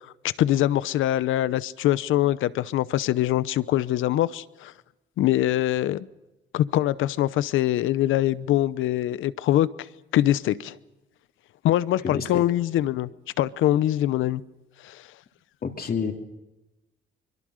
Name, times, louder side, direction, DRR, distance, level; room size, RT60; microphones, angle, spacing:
voice 1, 0.4-4.7 5.2-6.1 6.5-9.7 10.1-10.8 11.6-13.1 13.4-14.4 14.8-15.0, left 13 dB, 85° left, 17 dB, 0.8 m, -23 dB
voice 2, 12.0-12.4 15.6-16.1, left 6 dB, 50° left, 4 dB, 3.1 m, -28 dB
24.0 x 23.0 x 6.5 m, 1.0 s
cardioid pair, 90°, 20 cm